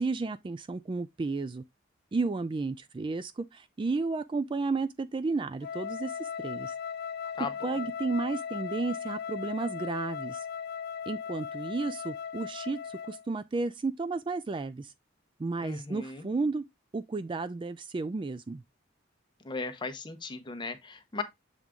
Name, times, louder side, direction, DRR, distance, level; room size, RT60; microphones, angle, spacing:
voice 1, 0.0-1.6 2.1-6.7 7.6-10.4 11.1-14.9 15.4-16.6 16.9-18.6, right 3 dB, 25° right, 0.3 m, -32 dB
Wind instrument woodwind instrument, 5.6-13.3, left 7 dB, 55° left, 0.4 m, -37 dB
voice 2, 7.4-7.8 15.6-16.3 19.4-21.2, left 4 dB, 25° left, 0.9 m, -37 dB
7.2 x 3.5 x 3.6 m
head